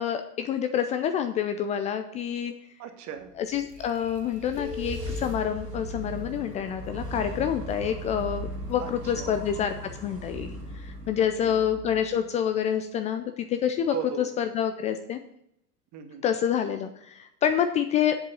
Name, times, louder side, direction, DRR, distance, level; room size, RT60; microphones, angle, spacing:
voice 1, 0.0-2.5 3.4-9.7 10.0-10.5 10.7-13.9 14.4-15.2 16.2-18.2, left 9 dB, 15° left, 8 dB, 0.3 m, -27 dB
voice 2, 2.8-3.4 8.8-9.4 11.5-11.6 13.9-14.3 15.9-16.2, right 8 dB, 35° right, 7 dB, 1.5 m, -38 dB
sound 1, 3.3-12.6, equal, 85° right, 1.8 m, -38 dB
sound 2, 4.6-8.1, left 4 dB, 50° left, 1.8 m, -42 dB
8.1 x 7.4 x 6.7 m, 0.76 s
figure-of-eight pair, 80°, 46 cm